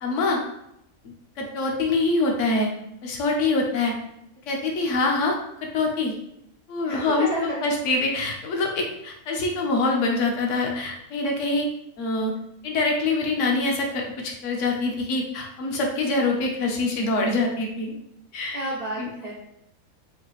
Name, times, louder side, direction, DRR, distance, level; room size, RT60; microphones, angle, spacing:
voice 1, 0.0-0.4 1.4-2.7 3.0-3.9 4.5-6.1 6.7-11.7 12.0-12.3 12.6-17.9 18.3-18.6 19.0-19.1, left 3 dB, 60° left, 1 dB, 1.1 m, -25 dB
voice 2, 6.9-7.7 18.5-19.3, right 1 dB, 85° right, -4 dB, 0.3 m, -30 dB
4.8 x 2.7 x 3.1 m, 0.79 s
omnidirectional pair, 1.5 m